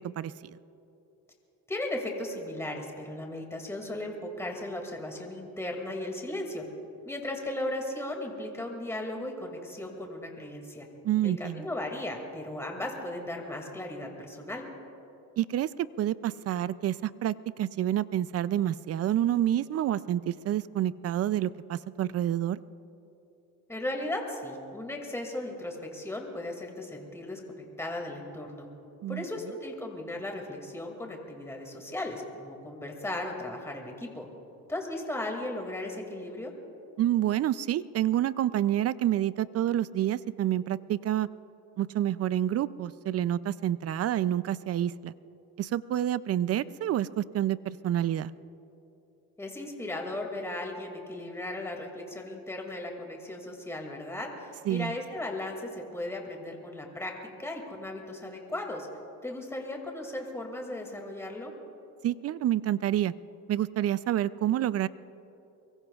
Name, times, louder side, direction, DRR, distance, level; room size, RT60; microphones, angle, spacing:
voice 1, 0.2-0.6 11.0-11.7 15.4-22.6 29.0-29.2 37.0-41.3 41.8-45.1 45.6-48.3 54.7-55.0 62.0-63.1 63.5-64.9, right 12 dB, 45° right, 17 dB, 0.4 m, -28 dB
voice 2, 1.7-6.6 7.0-10.9 11.2-14.6 23.7-28.7 29.1-34.3 34.7-36.5 49.4-57.1 57.4-58.9 59.2-61.5, left 1 dB, 5° left, 1 dB, 2.3 m, -36 dB
24.0 x 22.0 x 2.4 m, 3.0 s
cardioid pair, 110°, 35 cm